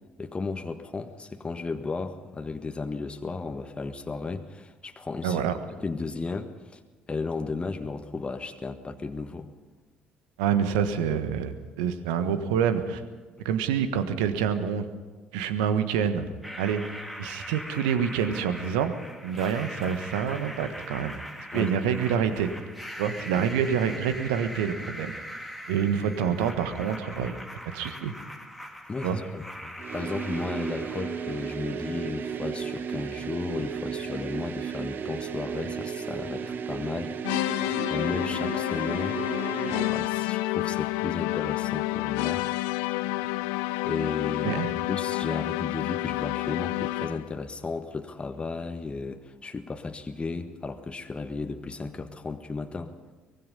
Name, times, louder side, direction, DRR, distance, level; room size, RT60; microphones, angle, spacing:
voice 1, 0.2-5.4 5.8-6.8 7.1-9.5 21.5-21.8 23.3-23.5 26.2-26.4 28.9-37.2 37.5-37.6 37.9-39.2 39.7-42.5 43.8-52.9, left 3 dB, 25° left, 6 dB, 1.6 m, -34 dB
voice 2, 5.2-5.6 10.4-13.0 13.4-14.8 15.3-16.3 16.6-16.8 17.2-18.9 19.2-21.2 21.5-22.5 23.0-25.1 25.7-27.3 27.7-28.1 29.0-29.2 44.4-44.7, right 8 dB, 70° right, 10 dB, 1.5 m, -27 dB
sound 1, 16.4-32.4, equal, ahead, 2.5 m, -41 dB
sound 2, 29.8-40.1, right 7 dB, 45° right, 1.1 m, -34 dB
sound 3, 37.2-47.4, left 19 dB, 65° left, 0.5 m, -29 dB
24.0 x 20.0 x 5.5 m, 1.3 s
figure-of-eight pair, 50°, 5 cm